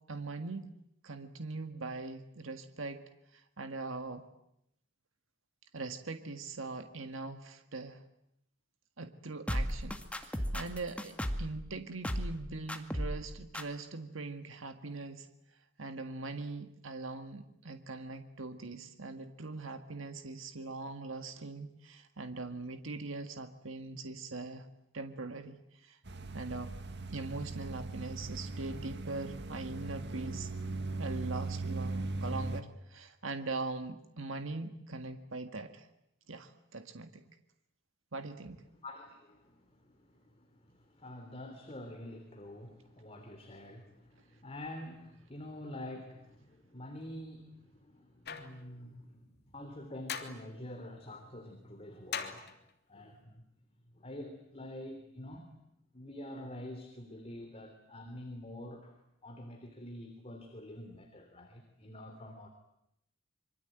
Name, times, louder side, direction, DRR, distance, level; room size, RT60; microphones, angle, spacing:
voice 1, 0.1-0.7 1.0-3.0 3.3-4.3 5.7-8.0 9.0-15.3 15.8-24.7 24.9-26.0 26.3-26.8 27.1-30.5 31.0-35.9 36.3-37.2 38.1-38.6, right 3 dB, 80° right, 7 dB, 1.8 m, -41 dB
sound 1, 9.5-11.6 12.0-12.4 12.7-13.3 13.5-13.6, equal, 5° left, 2.0 m, -34 dB
sound 2, 26.1-32.6, right 3 dB, 60° right, 1.8 m, -39 dB
voice 2, 38.8-52.5 52.9-53.4 53.9-55.5 55.9-59.0 59.2-62.5, left 1 dB, 30° left, 5 dB, 3.2 m, -47 dB
sound 3, 48.3-48.6 50.1-50.5 52.1-52.7, left 7 dB, 55° left, 2.8 m, -39 dB
26.5 x 24.0 x 9.1 m, 0.79 s
head